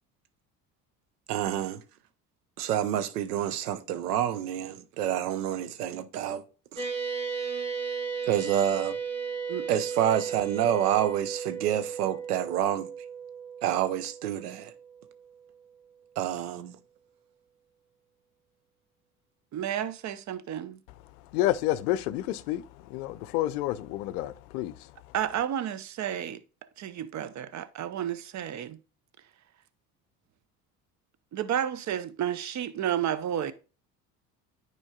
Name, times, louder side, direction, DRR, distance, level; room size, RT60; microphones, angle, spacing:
voice 1, 1.3-1.8 2.6-6.4 6.7-6.9 8.3-9.0 9.7-12.9 13.6-14.7 16.2-16.8, right 10 dB, 85° right, 0.7 m, -28 dB
sound 1, 6.8-15.5, right 6 dB, 15° right, 1.9 m, -35 dB
voice 2, 19.5-20.8 25.1-26.4 26.8-28.8 31.3-33.5, right 10 dB, 40° right, 0.6 m, -31 dB
voice 3, 20.9-25.1, left 14 dB, 75° left, 0.6 m, -30 dB
9.6 x 4.5 x 2.3 m
hypercardioid pair, 65°, 45 cm